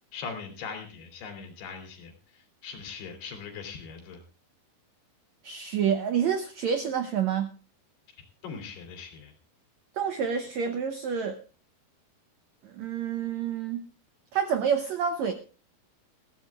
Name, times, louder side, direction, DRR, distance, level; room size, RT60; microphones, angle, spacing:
voice 1, 0.1-4.2 8.4-9.3, left 5 dB, 90° left, 5 dB, 5.0 m, -41 dB
voice 2, 5.4-7.5 9.9-11.4 12.6-13.8 14.3-15.3, right 7 dB, 80° right, 7 dB, 1.6 m, -28 dB
20.5 x 15.0 x 2.4 m, 0.36 s
omnidirectional pair, 4.5 m